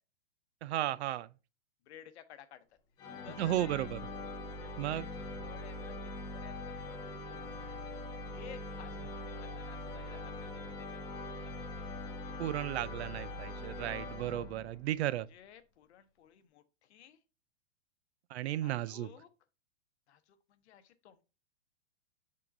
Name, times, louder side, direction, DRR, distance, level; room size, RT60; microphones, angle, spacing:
voice 1, 0.6-1.3 3.4-4.0 4.8-5.1 12.4-15.3 18.3-19.1, right 13 dB, 60° right, 0.4 m, -34 dB
voice 2, 1.8-2.6 3.2-3.9 4.4-7.6 8.3-10.9 11.1-11.7 15.0-17.2 18.6-19.3 20.1-21.2, left 10 dB, 60° left, 0.9 m, -56 dB
sound 1, 3.0-14.9, left 2 dB, 10° left, 0.4 m, -42 dB
6.8 x 3.8 x 3.7 m
hypercardioid pair, 145°, 37 cm